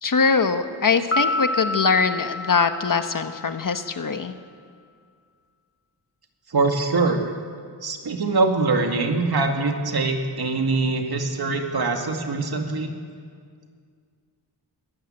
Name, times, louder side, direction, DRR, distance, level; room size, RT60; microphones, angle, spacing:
voice 1, 0.0-4.3, left 5 dB, 50° left, 8 dB, 1.2 m, -22 dB
Piano, 1.1-3.7, left 2 dB, 30° left, 1.8 m, -28 dB
voice 2, 6.5-7.3 7.8-13.0, right 3 dB, 60° right, 3 dB, 2.3 m, -23 dB
21.5 x 14.0 x 8.8 m, 2.1 s
wide cardioid pair, 115°, 43 cm